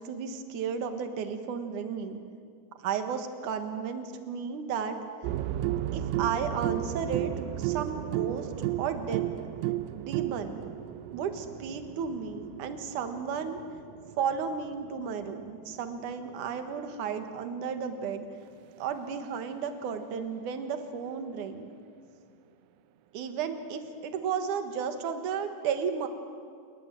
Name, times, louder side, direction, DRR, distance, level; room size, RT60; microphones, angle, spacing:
voice 1, 0.0-2.2 2.8-5.0 5.9-9.3 9.9-10.6 11.1-13.6 14.2-18.3 18.8-21.7 23.1-26.1, right 6 dB, 70° right, 7 dB, 2.0 m, -33 dB
sound 1, 5.2-17.1 18.5-18.6, right 13 dB, 90° right, 3.4 m, -34 dB
28.0 x 20.5 x 7.8 m, 2.3 s
omnidirectional pair, 5.7 m